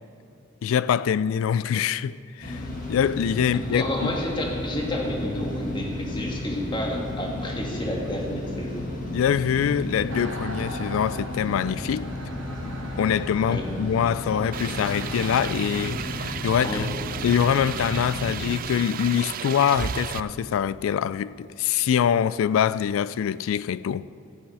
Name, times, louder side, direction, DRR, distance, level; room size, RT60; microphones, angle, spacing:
voice 1, 0.6-2.6 2.9-4.1 9.1-12.1 13.0-16.9 17.2-24.1, left 8 dB, 75° left, 0.3 m, -24 dB
sound 1, 2.4-18.6, left 1 dB, 40° left, 1.6 m, -33 dB
voice 2, 3.7-8.9 13.5-13.7 16.6-16.8, left 1 dB, 25° left, 1.6 m, -30 dB
sound 2, 10.1-16.5, right 2 dB, 75° right, 1.4 m, -40 dB
sound 3, 14.5-20.2, right 8 dB, 45° right, 0.3 m, -34 dB
14.5 x 9.0 x 4.8 m
head